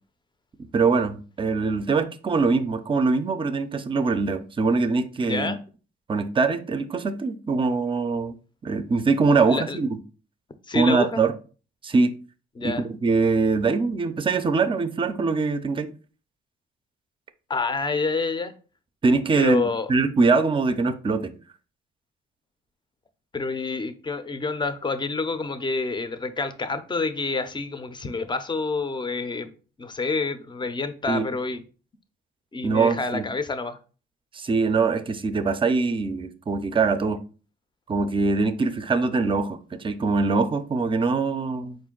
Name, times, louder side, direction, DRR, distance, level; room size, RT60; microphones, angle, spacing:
voice 1, 0.6-5.6 6.1-8.4 8.6-10.0 10.7-11.3 11.8-12.1 12.6-15.9 19.0-21.3 31.1-31.2 32.6-33.3 34.3-37.2 37.9-41.8, right 4 dB, 25° right, 0.5 m, -23 dB
voice 2, 5.2-5.6 9.5-9.8 10.7-11.2 12.6-12.8 17.5-18.5 19.4-19.9 23.3-29.5 29.8-31.6 32.5-33.8, left 3 dB, 25° left, 0.5 m, -28 dB
4.3 x 2.5 x 3.7 m
cardioid pair, 90°, 20 cm